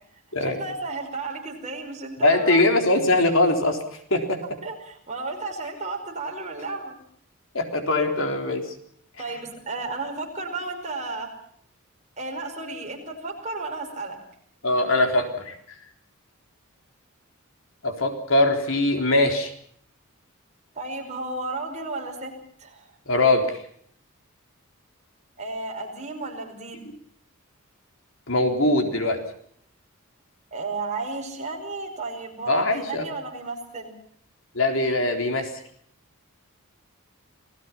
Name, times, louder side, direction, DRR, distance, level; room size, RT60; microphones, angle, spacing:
voice 1, 0.4-2.6 4.6-7.0 9.2-11.3 12.2-14.2 20.8-22.3 22.6-22.9 25.4-26.8 30.5-34.0, right 3 dB, 35° right, 2 dB, 5.4 m, -33 dB
voice 2, 2.2-3.8 4.1-4.4 7.5-8.7 14.6-15.6 17.8-19.5 23.1-23.6 28.3-29.2 32.5-33.1 34.5-35.5, left 2 dB, 65° left, 5 dB, 3.9 m, -21 dB
28.5 x 19.0 x 5.8 m, 0.63 s
head